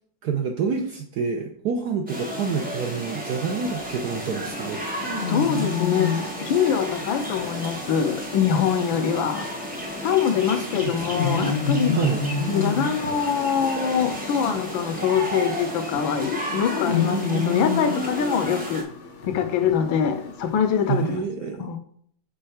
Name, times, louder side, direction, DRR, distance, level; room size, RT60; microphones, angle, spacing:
voice 1, 0.2-5.1 10.3-11.0 11.9-12.2 20.9-21.7, right 6 dB, 70° right, 4 dB, 1.0 m, -28 dB
sound 1, 2.1-18.8, right 1 dB, 10° right, 0.5 m, -33 dB
sound 2, 3.6-21.2, left 5 dB, 60° left, 0.7 m, -31 dB
voice 2, 5.3-9.5 10.0-12.0 12.5-18.9 19.3-21.2 21.6-21.8, left 7 dB, 75° left, 9 dB, 1.3 m, -24 dB
5.5 x 3.6 x 5.6 m, 0.62 s
omnidirectional pair, 2.3 m